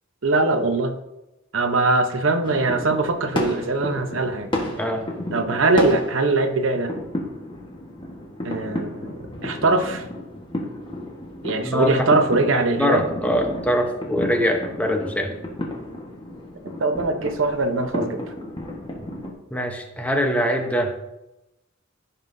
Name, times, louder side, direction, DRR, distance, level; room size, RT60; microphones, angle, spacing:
voice 1, 0.2-0.9 1.5-4.5 5.3-6.9 8.4-10.0 11.4-13.1 16.8-18.2, right 3 dB, 80° right, 7 dB, 0.9 m, -21 dB
sound 1, 2.4-19.3, left 1 dB, 25° left, 1.4 m, -32 dB
voice 2, 11.6-12.1 12.5-15.3 19.5-20.9, equal, 5° left, 3 dB, 0.9 m, -23 dB
14.5 x 5.5 x 2.7 m, 0.92 s
head